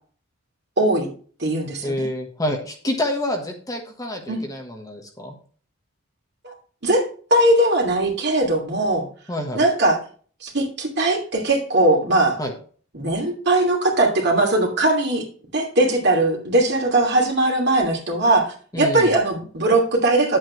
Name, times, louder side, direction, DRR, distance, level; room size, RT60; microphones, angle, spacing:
voice 1, 0.8-1.1 1.4-2.1 4.3-4.4 6.4-6.5 6.8-7.0 7.3-9.0 9.5-10.0 10.4-12.4 12.9-15.2 15.5-20.4, right 2 dB, 50° right, 1 dB, 2.7 m, -20 dB
voice 2, 1.8-5.3 9.3-9.6 12.4-12.5 18.7-19.1, left 1 dB, 15° left, 2 dB, 1.3 m, -27 dB
9.8 x 7.8 x 3.2 m, 0.43 s
head